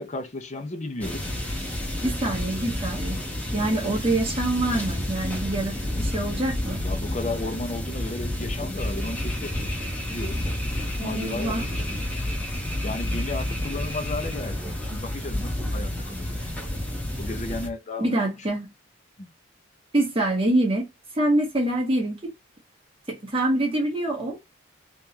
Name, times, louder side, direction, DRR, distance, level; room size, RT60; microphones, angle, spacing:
voice 1, 0.0-1.3 6.8-10.5 11.0-12.1 12.8-16.5 17.2-18.3 19.2-19.3, left 2 dB, 35° left, 0.6 m, -34 dB
sound 1, 1.0-17.7, left 1 dB, 5° left, 1.1 m, -30 dB
voice 2, 2.0-3.2 3.5-6.8 11.0-11.6 18.0-18.7 19.9-20.9 21.1-22.3 23.1-24.4, right 1 dB, 25° right, 1.3 m, -25 dB
3.6 x 3.1 x 2.8 m
head